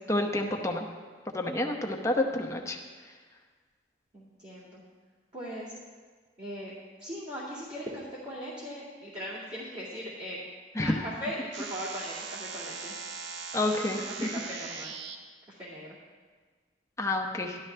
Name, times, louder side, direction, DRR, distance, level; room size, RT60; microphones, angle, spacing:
voice 1, 0.1-0.9 1.3-2.8 10.8-11.0 13.5-14.0 17.0-17.6, left 2 dB, 15° left, 2 dB, 0.9 m, -28 dB
voice 2, 4.1-4.8 5.3-5.7 6.4-10.4 10.8-13.0 13.6-14.9 15.5-15.9, equal, 40° right, -10 dB, 2.3 m, -39 dB
sound 1, 11.5-15.2, right 5 dB, 85° right, 0.8 m, -40 dB
13.0 x 12.0 x 3.4 m, 1.5 s
head